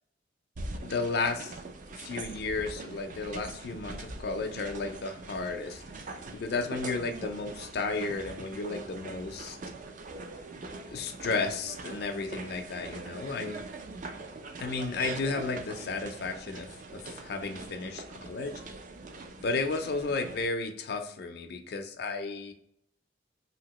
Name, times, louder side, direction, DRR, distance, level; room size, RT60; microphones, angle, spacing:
sound 1, 0.6-20.5, right 3 dB, 45° right, 0.4 m, -43 dB
voice 1, 0.8-1.6 1.9-5.8 6.3-9.6 10.9-13.6 14.6-18.6 19.4-22.5, left 3 dB, 60° left, 5 dB, 0.4 m, -33 dB
2.8 x 2.8 x 2.9 m, 0.71 s
head